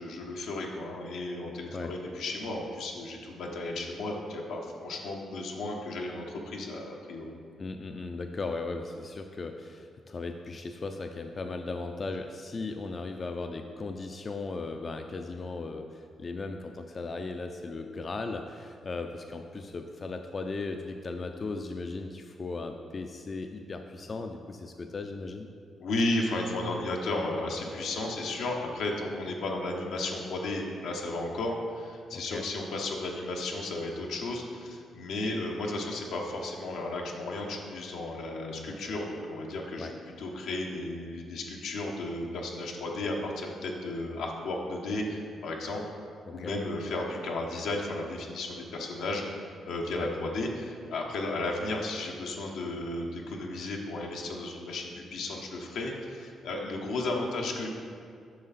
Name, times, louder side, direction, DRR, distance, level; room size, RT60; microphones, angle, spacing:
voice 1, 0.0-7.3 25.8-45.8 46.3-57.7, left 2 dB, 85° left, 0 dB, 1.0 m, -34 dB
voice 2, 7.6-25.5 32.1-32.5 39.8-39.9 46.3-46.6 49.9-50.1, left 3 dB, 40° left, 5 dB, 0.4 m, -37 dB
7.6 x 5.8 x 4.1 m, 2.3 s
cardioid pair, 80°, 0 cm